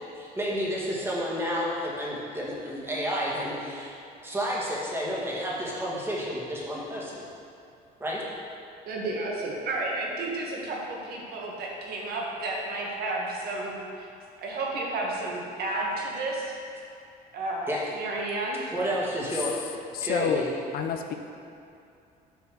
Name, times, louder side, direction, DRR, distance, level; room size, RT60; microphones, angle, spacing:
voice 1, 0.1-3.9 4.2-7.3 8.0-8.2 17.7-17.8 18.7-19.6 20.0-20.5, equal, 15° right, -5 dB, 1.9 m, -30 dB
voice 2, 8.9-13.7 14.0-14.1 14.4-16.4 17.3-18.7, right 2 dB, 65° right, -2 dB, 1.6 m, -32 dB
voice 3, 19.9-20.4 20.7-21.1, left 7 dB, 65° left, 5 dB, 0.6 m, -28 dB
6.9 x 4.3 x 6.4 m, 2.6 s
cardioid pair, 110°, 17 cm